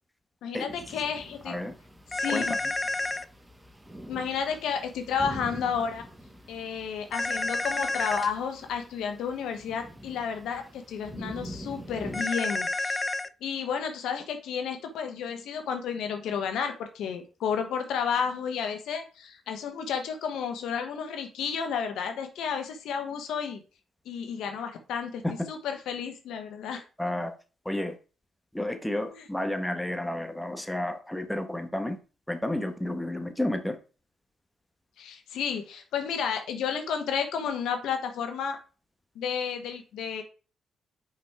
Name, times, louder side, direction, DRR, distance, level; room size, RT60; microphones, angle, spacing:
voice 1, 0.4-1.5 2.1-2.6 4.1-6.0 6.5-13.0 13.4-23.6 24.0-26.8 29.2-29.3 35.0-38.6 39.1-40.2, left 7 dB, 70° left, 6 dB, 1.1 m, -32 dB
sound 1, 0.7-12.2, equal, 15° right, 1.5 m, -45 dB
sound 2, 2.1-3.2 7.1-8.3 12.1-13.3, left 2 dB, 25° left, 0.5 m, -29 dB
voice 2, 27.0-27.3 27.6-27.9 28.5-32.0 32.3-33.8, left 1 dB, 5° left, 7 dB, 1.4 m, -31 dB
5.7 x 5.2 x 4.8 m, 0.35 s
hypercardioid pair, 45°, 0 cm